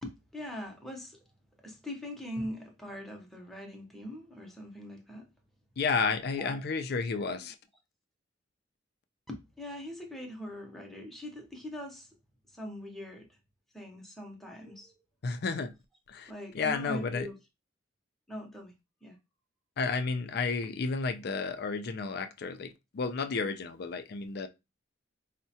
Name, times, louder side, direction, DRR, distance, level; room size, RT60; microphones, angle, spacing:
voice 1, 0.0-1.2 1.6-5.3 6.2-6.6 6.9-7.5 9.3-12.1 12.5-13.4 13.7-14.9 16.3-17.4 18.3-18.7 19.0-19.2 20.6-20.7, left 1 dB, ahead, 0.7 m, -42 dB
voice 2, 5.8-7.5 15.2-15.7 16.1-17.3 19.8-24.5, left 4 dB, 55° left, 0.4 m, -32 dB
4.5 x 2.1 x 2.7 m
head